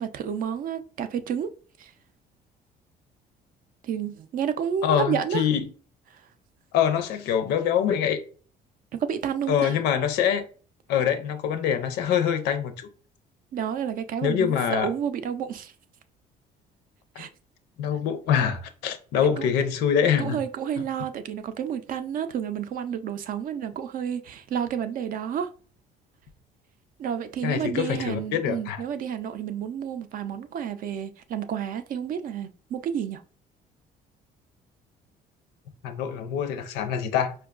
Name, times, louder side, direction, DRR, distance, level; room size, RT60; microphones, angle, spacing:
voice 1, 0.0-1.5 1.8-1.9 3.8-5.5 6.1-6.2 8.9-9.8 13.5-15.7 17.2-17.3 19.4-19.5 20.2-25.5 27.0-33.2, right 8 dB, 55° right, 0.4 m, -30 dB
voice 2, 4.8-5.7 6.7-8.2 9.5-10.5 10.9-12.9 14.2-14.9 17.2-17.3 17.8-20.4 27.4-28.8 35.8-37.3, left 8 dB, 85° left, 0.6 m, -24 dB
4.4 x 2.2 x 2.3 m
cardioid pair, 110°, 17 cm